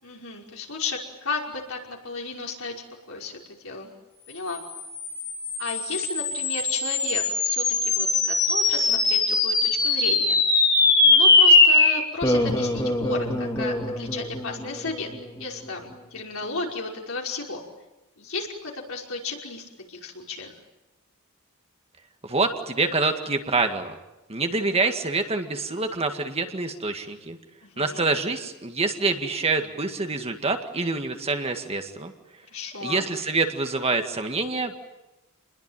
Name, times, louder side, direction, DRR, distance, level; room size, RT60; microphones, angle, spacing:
voice 1, 0.0-2.8 3.1-3.9 4.3-4.6 5.6-10.4 11.0-15.1 15.4-17.6 18.2-20.5 27.6-28.1 32.5-33.1, left 3 dB, 65° left, 0 dB, 5.4 m, -34 dB
sound 1, 4.7-15.4, left 3 dB, 20° left, 3.1 m, -21 dB
voice 2, 22.2-24.0 24.3-27.4 27.8-32.1 32.8-34.8, right 3 dB, 30° right, 5 dB, 2.0 m, -26 dB
28.5 x 21.5 x 9.2 m, 0.99 s
head